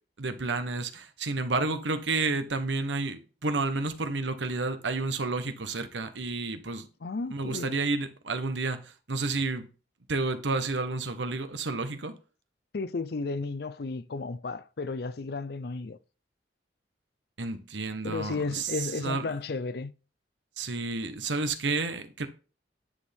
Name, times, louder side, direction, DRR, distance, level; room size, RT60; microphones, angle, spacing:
voice 1, 0.2-6.9 7.3-9.7 10.1-12.1 17.4-19.3 20.6-22.3, right 3 dB, 85° right, 1.1 m, -30 dB
voice 2, 7.0-7.8 12.7-16.0 18.0-19.9, left 3 dB, 60° left, 0.5 m, -33 dB
10.0 x 6.2 x 3.5 m
head